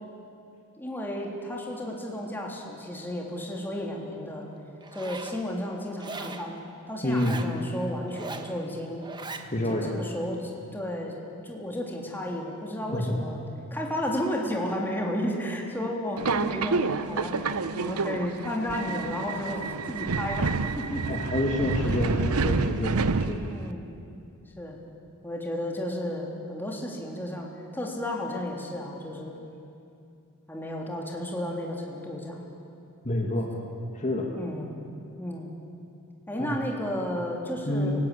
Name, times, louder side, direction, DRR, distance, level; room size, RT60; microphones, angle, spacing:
voice 1, 0.8-4.5 4.9-9.0 9.6-11.1 11.4-13.4 13.7-21.0 21.8-22.0 23.5-23.9 24.6-24.8 25.2-29.4 30.5-32.4 34.3-34.7 35.2-35.5 36.3-38.1, left 1 dB, 10° left, -1 dB, 3.4 m, -33 dB
Zipper (clothing), 4.8-5.4 6.0-6.5 7.1-7.5 8.1-8.5 9.0-9.5, right 3 dB, 20° right, 1.3 m, -39 dB
voice 2, 7.0-7.4 9.5-10.0 12.9-13.1 21.0-23.5 33.0-33.5 33.9-34.3 36.4-36.6 37.7-38.0, left 1 dB, 35° left, 0 dB, 2.3 m, -28 dB
Subway metro underground, 16.2-23.7, right 4 dB, 85° right, 0.8 m, -28 dB
30.0 x 18.0 x 8.6 m, 2.6 s
head